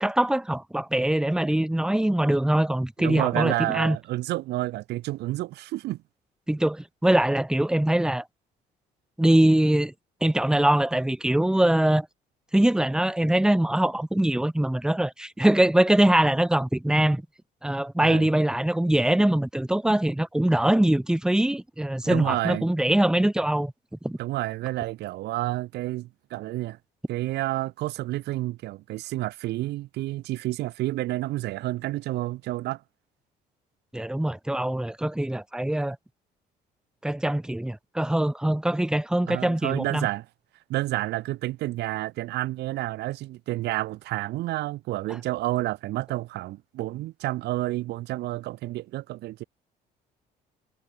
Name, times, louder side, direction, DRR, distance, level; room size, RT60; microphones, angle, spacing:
voice 1, 0.0-4.0 6.5-8.2 9.2-9.9 10.2-12.1 12.5-17.2 17.6-23.7 24.0-24.2 33.9-36.0 37.0-40.1, right 1 dB, 5° right, 1.2 m, -23 dB
voice 2, 3.0-6.0 18.0-18.3 22.0-22.7 24.2-26.8 27.1-32.8 39.3-40.2 40.7-49.4, right 17 dB, 80° right, 2.7 m, -30 dB
cardioid pair, 110°, 17 cm